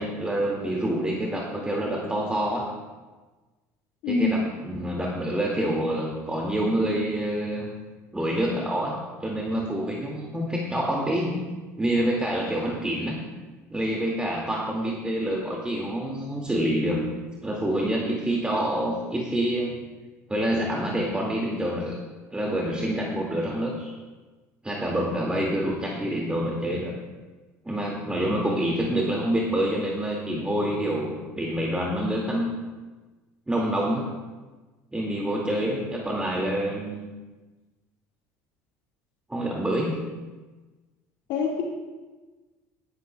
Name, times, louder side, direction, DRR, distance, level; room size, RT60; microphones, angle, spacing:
voice 1, 0.0-2.7 4.1-7.7 8.1-11.4 11.8-13.2 13.7-17.0 17.4-19.8 20.3-22.0 22.3-23.9 24.6-27.0 27.6-32.5 33.5-34.1 34.9-37.0 39.3-40.0, right 1 dB, 10° right, -2 dB, 2.1 m, -27 dB
voice 2, 4.0-4.4 41.3-41.6, left 4 dB, 65° left, -1 dB, 1.7 m, -24 dB
17.0 x 11.0 x 2.3 m, 1.3 s
hypercardioid pair, 70°, 8 cm